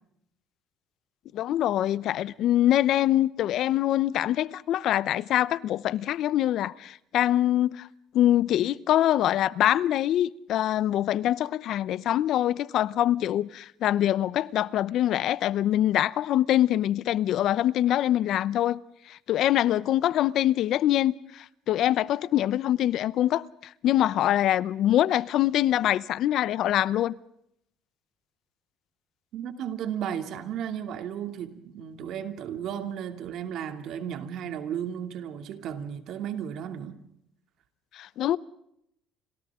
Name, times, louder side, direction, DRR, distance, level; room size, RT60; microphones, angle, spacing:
voice 1, 1.3-7.9 8.1-18.8 19.1-23.4 23.8-27.1 38.0-38.4, left 12 dB, 60° left, 0.7 m, -24 dB
voice 2, 29.3-37.0, right 9 dB, 60° right, 2.6 m, -34 dB
30.0 x 27.0 x 3.8 m
cardioid pair, 125°, 0 cm